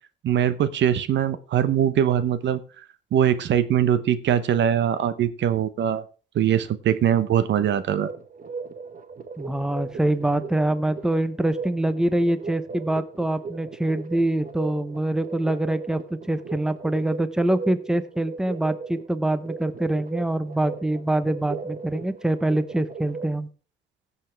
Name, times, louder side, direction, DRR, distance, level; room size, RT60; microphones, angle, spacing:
voice 1, 0.2-2.6 3.1-6.0 6.3-8.1, right 9 dB, 65° right, 13 dB, 0.8 m, -22 dB
sound 1, 8.0-23.4, right 4 dB, 45° right, 1.1 m, -38 dB
voice 2, 9.4-23.5, right 1 dB, 5° right, 12 dB, 0.8 m, -25 dB
16.0 x 6.9 x 3.4 m, 0.37 s
cardioid pair, 90°, 20 cm